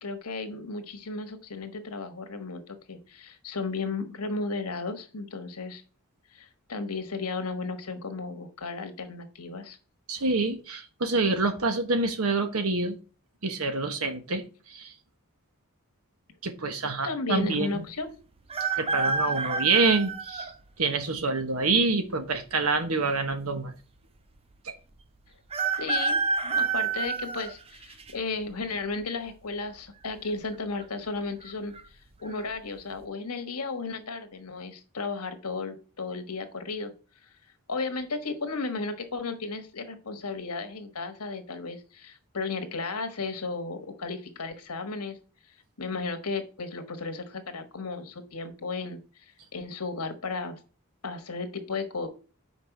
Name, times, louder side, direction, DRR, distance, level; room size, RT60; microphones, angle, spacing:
voice 1, 0.0-5.8 6.3-9.8 17.0-18.1 25.8-31.7 32.2-36.9 37.7-45.2 45.8-49.0 49.5-50.6 51.0-52.1, left 3 dB, 80° left, 6 dB, 1.3 m, -34 dB
voice 2, 10.1-13.0 13.4-14.4 14.7-14.9 16.4-17.8 18.8-20.5 20.8-23.7 24.6-24.7, right 3 dB, 75° right, 8 dB, 1.2 m, -26 dB
sound 1, 18.5-20.5 21.2-21.3 22.4-23.0 23.3-23.4 23.6-23.7 25.5-28.1 28.6-29.1 30.2-30.5 30.8-30.9 31.4-31.8 32.3-32.5, right 5 dB, 25° right, 0.5 m, -29 dB
5.3 x 4.8 x 5.9 m, 0.36 s
head